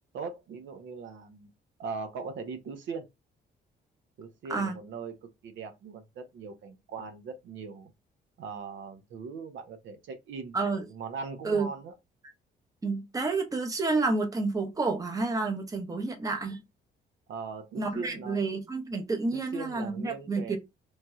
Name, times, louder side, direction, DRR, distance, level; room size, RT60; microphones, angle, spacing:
voice 1, 0.1-1.5 1.8-3.0 4.2-5.2 5.4-7.9 8.4-10.6 10.9-11.9 17.3-18.4 19.3-20.6, right 5 dB, 70° right, 0.6 m, -40 dB
voice 2, 10.5-10.8 11.4-11.7 12.8-16.6 17.7-20.6, right 3 dB, 15° right, 0.7 m, -29 dB
3.1 x 2.6 x 2.3 m
cardioid pair, 90°, 20 cm